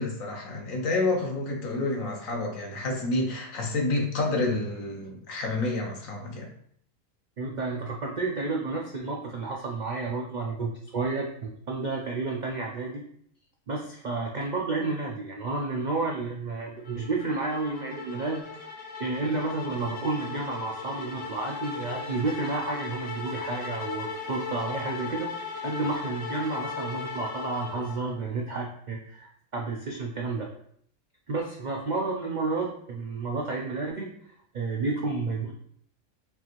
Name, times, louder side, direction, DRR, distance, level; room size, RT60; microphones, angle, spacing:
voice 1, 0.0-6.5, left 2 dB, 70° left, 1 dB, 1.2 m, -29 dB
voice 2, 7.4-13.0 13.7-18.4 19.0-25.3 25.6-30.5 31.3-34.1 34.5-35.5, right 3 dB, 70° right, -1 dB, 0.4 m, -31 dB
sound 1, 16.8-28.2, left 5 dB, 50° left, 0.7 m, -37 dB
5.4 x 2.5 x 2.9 m, 0.65 s
omnidirectional pair, 1.5 m